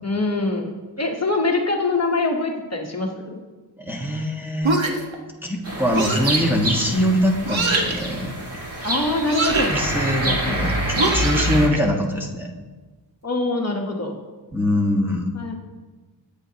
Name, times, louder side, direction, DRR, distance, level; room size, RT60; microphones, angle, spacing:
voice 1, 0.0-3.4 8.8-10.9 11.8-11.9 13.2-14.2 15.3-15.6, left 2 dB, 35° left, 0 dB, 1.2 m, -24 dB
voice 2, 3.8-4.8 5.4-8.3 9.7-12.5 14.5-15.3, equal, 5° right, -2 dB, 1.4 m, -23 dB
sound 1, 4.6-5.2 5.9-6.4 7.5-8.0 9.2-9.8 11.0-11.8, right 3 dB, 80° right, 1.5 m, -23 dB
sound 2, 5.6-11.7, right 1 dB, 30° right, 2.1 m, -26 dB
20.0 x 8.4 x 2.9 m, 1.3 s
wide cardioid pair, 115°, 46 cm